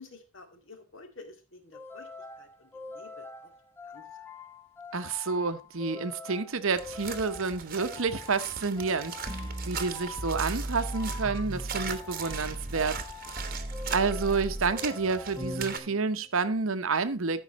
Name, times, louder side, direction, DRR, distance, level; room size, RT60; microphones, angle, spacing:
voice 1, 0.0-2.1 2.4-3.5 3.8-4.1, left 3 dB, 60° left, 2.1 m, -50 dB
sound 1, 1.7-16.3, left 3 dB, 10° left, 0.8 m, -45 dB
voice 2, 4.9-13.0 13.5-13.6 13.9-17.4, right 4 dB, 65° right, 0.9 m, -29 dB
sound 2, 6.7-15.8, right 7 dB, 40° right, 1.1 m, -40 dB
sound 3, 9.3-12.0 12.3-14.7, right 1 dB, 20° right, 0.7 m, -37 dB
13.5 x 5.6 x 4.1 m
head